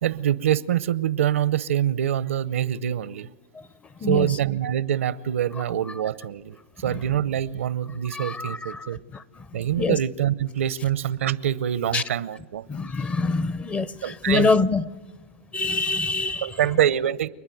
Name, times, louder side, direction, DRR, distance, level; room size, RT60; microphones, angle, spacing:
voice 1, 0.0-3.3 4.1-9.0 9.5-12.6 14.0-14.5 16.4-17.3, right 10 dB, 85° right, 0.7 m, -25 dB
voice 2, 4.0-4.4 6.8-7.0 8.1-10.0 11.9-12.0 12.7-14.9 15.5-16.6, left 3 dB, 20° left, 0.6 m, -26 dB
29.0 x 9.9 x 9.3 m
hypercardioid pair, 130°, 7 cm